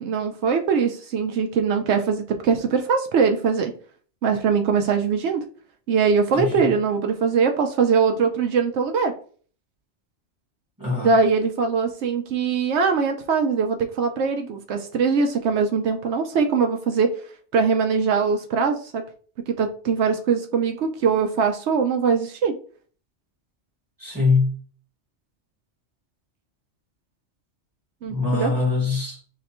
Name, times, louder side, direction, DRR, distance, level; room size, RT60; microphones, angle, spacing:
voice 1, 0.0-3.7 4.2-5.4 5.9-9.1 11.0-17.2 17.5-19.0 19.5-22.5 28.0-28.5, right 5 dB, 70° right, 0.9 m, -22 dB
voice 2, 6.3-6.7 10.8-11.1 24.0-24.6 28.1-29.2, left 4 dB, 15° right, 1.6 m, -23 dB
3.3 x 2.9 x 4.1 m
omnidirectional pair, 1.2 m